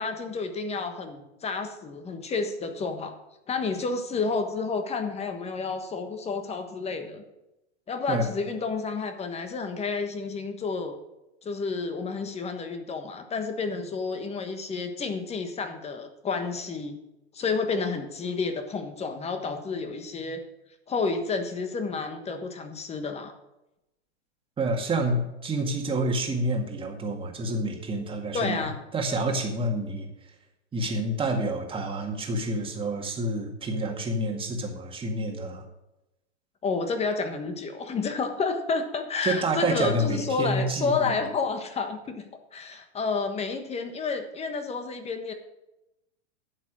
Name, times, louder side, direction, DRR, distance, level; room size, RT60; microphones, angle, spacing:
voice 1, 0.0-3.2 3.5-7.2 7.9-10.9 11.4-17.0 17.3-20.4 20.9-23.3 28.3-28.8 36.6-42.2 42.5-45.3, left 4 dB, 20° left, 7 dB, 1.3 m, -30 dB
voice 2, 24.6-28.7 28.9-30.1 30.7-35.7 39.2-41.2, right 1 dB, 15° right, 2 dB, 2.0 m, -28 dB
11.0 x 7.4 x 6.2 m, 0.92 s
hypercardioid pair, 125°, 34 cm